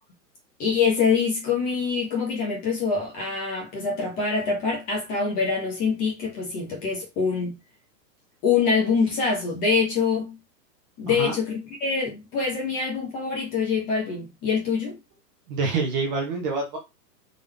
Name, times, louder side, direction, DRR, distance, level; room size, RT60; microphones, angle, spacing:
voice 1, 0.6-7.5 8.4-10.4 11.0-15.0, left 5 dB, 15° left, 0.9 m, -25 dB
voice 2, 11.1-11.4 15.5-16.8, right 4 dB, 25° right, 0.8 m, -26 dB
3.9 x 2.6 x 3.4 m
hypercardioid pair, 160°, 50 cm